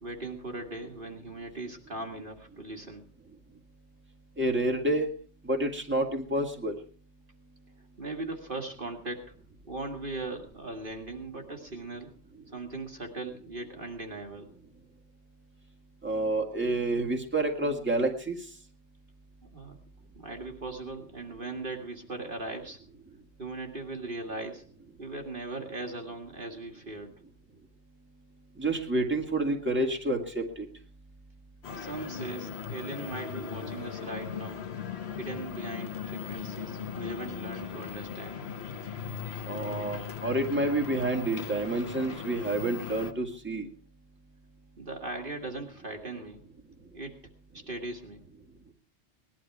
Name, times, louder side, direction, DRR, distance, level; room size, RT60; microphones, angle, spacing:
voice 1, 0.0-3.0 8.0-9.2 9.7-12.1 12.5-14.5 19.4-19.8 20.2-22.8 23.4-24.7 25.0-27.1 31.8-34.7 35.1-38.4 44.8-46.4 46.9-47.2 47.5-48.2, right 2 dB, 50° right, 3 dB, 2.1 m, -39 dB
voice 2, 4.4-5.1 5.4-6.8 16.0-18.4 28.6-30.7 39.5-43.7, right 2 dB, 10° right, 2 dB, 2.1 m, -29 dB
sound 1, 31.6-43.1, left 8 dB, 65° left, 1.3 m, -38 dB
19.0 x 12.0 x 4.7 m, 0.43 s
omnidirectional pair, 1.2 m